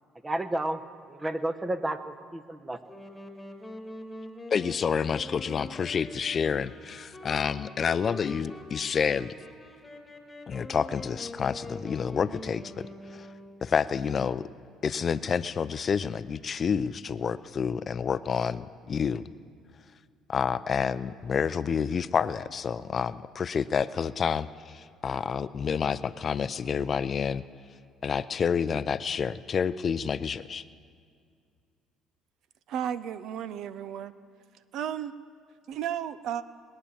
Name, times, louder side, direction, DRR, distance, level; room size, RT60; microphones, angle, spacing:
voice 1, 0.2-0.8 1.1-2.8, right 1 dB, 15° right, 11 dB, 0.9 m, -31 dB
Wind instrument woodwind instrument, 2.9-13.8, left 2 dB, 15° left, 1.8 m, -44 dB
voice 2, 4.5-9.3 10.5-13.3 13.6-14.4 14.8-19.2 20.3-27.4 28.0-30.6, left 6 dB, 40° left, 15 dB, 0.4 m, -29 dB
voice 3, 32.7-34.1 34.7-35.1 35.7-36.4, right 9 dB, 65° right, 15 dB, 0.5 m, -33 dB
21.0 x 8.8 x 7.0 m, 2.2 s
supercardioid pair, 85°, 0 cm